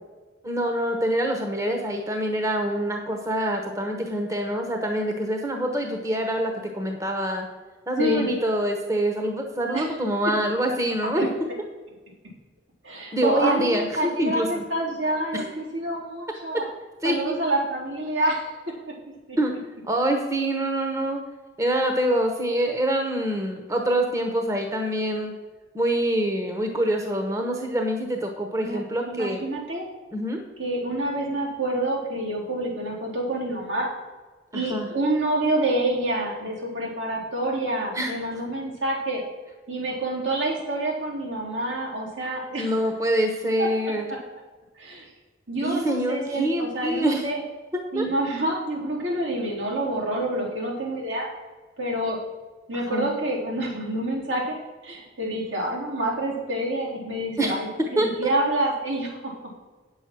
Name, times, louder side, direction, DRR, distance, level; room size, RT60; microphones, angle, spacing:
voice 1, 0.4-7.5 7.9-11.3 13.1-13.9 14.2-14.6 15.3-15.5 17.0-17.3 19.4-19.5 19.9-21.2 21.6-25.3 25.7-29.4 30.1-30.4 34.5-34.9 37.9-38.1 42.6-44.1 45.6-47.3 47.7-48.0 52.7-53.1 57.4-57.6 58.0-58.3, right 1 dB, 15° right, 3 dB, 1.0 m, -25 dB
voice 2, 12.8-16.6 17.0-18.5 19.3-19.4 28.6-29.9 30.6-33.9 34.5-39.2 39.7-42.8 43.6-43.7 44.8-45.1 45.5-47.4 47.9-51.3 51.8-52.2 52.7-54.6 54.8-59.3, right 1 dB, 90° right, -4 dB, 3.8 m, -27 dB
9.3 x 7.2 x 6.2 m, 1.3 s
head